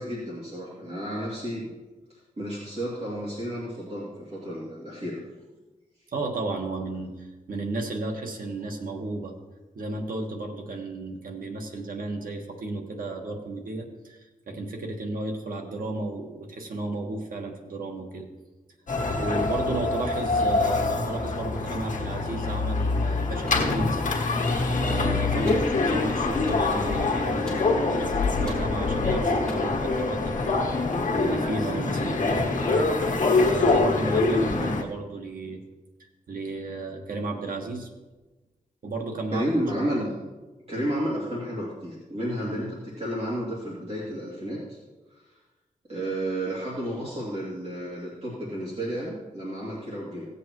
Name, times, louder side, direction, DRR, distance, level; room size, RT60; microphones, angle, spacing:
voice 1, 0.0-1.7 2.1-5.2 25.4-25.6 39.3-40.2 40.7-44.8 45.9-50.3, right 1 dB, 45° right, -6 dB, 2.6 m, -31 dB
voice 2, 6.1-9.3 9.7-18.3 19.2-24.0 24.8-25.5 25.8-32.9 33.4-35.6 36.3-37.9 38.8-39.5, right 2 dB, 75° right, 2 dB, 1.5 m, -33 dB
sound 1, 18.9-34.8, left 3 dB, 60° left, 1.4 m, -25 dB
sound 2, 23.5-23.9 24.5-25.1 25.5-25.7 26.5-26.7 27.5-27.7 28.5-28.7 29.5-29.6, left 1 dB, 5° left, 3.9 m, -41 dB
16.5 x 8.2 x 3.1 m, 1.2 s
wide cardioid pair, 95°, 15 cm